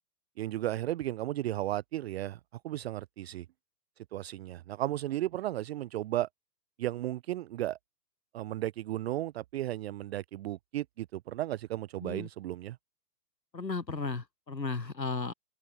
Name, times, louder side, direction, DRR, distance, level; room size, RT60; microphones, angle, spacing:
voice 1, 0.4-3.5 4.1-6.3 6.8-7.8 8.3-12.8, right 14 dB, 40° right, 0.9 m, -34 dB
voice 2, 13.5-15.3, left 4 dB, 90° left, 1.7 m, -35 dB
figure-of-eight pair, 115°, 49 cm